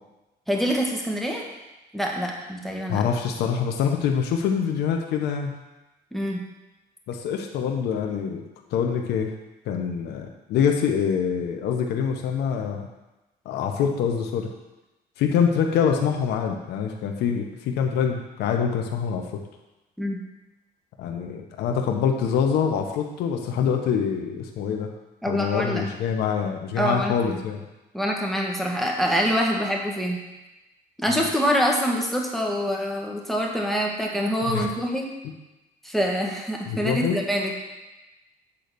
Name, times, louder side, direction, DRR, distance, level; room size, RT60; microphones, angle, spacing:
voice 1, 0.5-1.4 1.9-3.0 6.1-6.4 20.0-20.2 25.2-25.8 26.8-27.4 27.9-30.2 31.0-35.1 35.8-37.5, equal, ahead, -1 dB, 1.4 m, -25 dB
voice 2, 2.9-5.5 7.1-8.4 8.7-9.3 9.7-12.9 13.4-14.5 15.2-19.2 21.0-24.9 25.3-27.6 31.1-31.2 34.5-34.7 36.7-37.2, left 7 dB, 80° left, 3 dB, 1.0 m, -25 dB
8.5 x 3.9 x 6.8 m, 1.0 s
cardioid pair, 110°, 17 cm